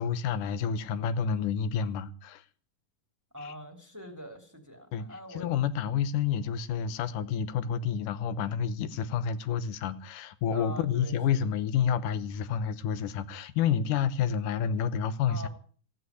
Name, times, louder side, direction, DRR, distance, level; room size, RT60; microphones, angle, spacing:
voice 1, 0.0-2.4 3.4-3.5 4.9-15.5, left 7 dB, 85° left, 2.5 m, -29 dB
voice 2, 3.3-5.5 10.5-11.4 15.3-15.5, left 1 dB, 5° right, 2.6 m, -43 dB
16.0 x 9.1 x 9.6 m
omnidirectional pair, 3.6 m